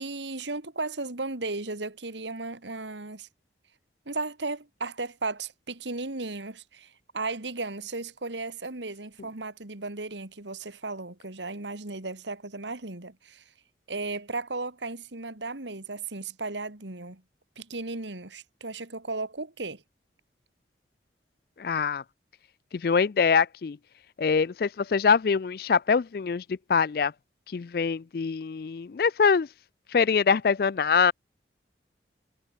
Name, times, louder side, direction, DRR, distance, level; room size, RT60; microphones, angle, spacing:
voice 1, 0.0-3.3 4.1-13.4 13.9-17.2 17.6-19.8, right 3 dB, 80° right, 2.3 m, -35 dB
voice 2, 21.6-22.0 22.8-23.8 24.2-27.1 27.5-29.5 29.9-31.1, left 5 dB, 55° left, 0.4 m, -24 dB
head